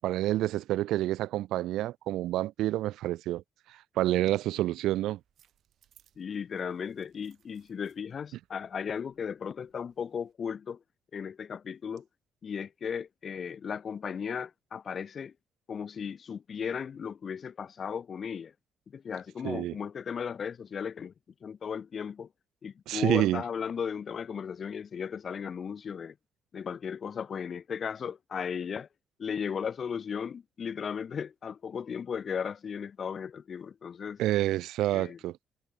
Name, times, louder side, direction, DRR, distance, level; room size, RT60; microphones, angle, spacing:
voice 1, 0.0-3.4 3.7-5.2 19.4-19.7 22.9-23.4 34.2-35.4, right 14 dB, 85° right, 0.3 m, -28 dB
sound 1, 4.9-10.3, right 10 dB, 70° right, 3.9 m, -69 dB
voice 2, 6.2-10.8 11.1-12.1 12.4-15.3 15.7-18.5 18.9-21.1 21.4-22.3 22.6-26.2 26.5-28.9 29.2-34.2 34.9-35.2, left 7 dB, 50° left, 0.3 m, -36 dB
cardioid pair, 90°, 0 cm